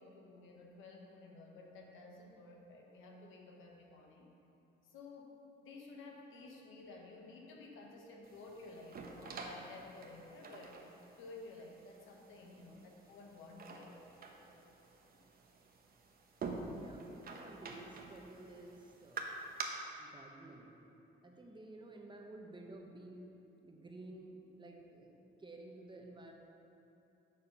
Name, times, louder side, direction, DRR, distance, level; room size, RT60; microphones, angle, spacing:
voice 1, 0.0-4.3 4.9-10.8 11.2-14.1 15.1-15.2, left 3 dB, 85° left, 0 dB, 1.2 m, -53 dB
sound 1, 8.2-19.6, right 4 dB, 50° right, 1.0 m, -48 dB
voice 2, 12.4-12.8 16.8-19.4 20.0-20.8 21.2-23.2 23.6-26.3, right 2 dB, 25° right, 1 dB, 1.1 m, -53 dB
7.0 x 6.7 x 5.4 m, 2.9 s
cardioid pair, 90°, 20 cm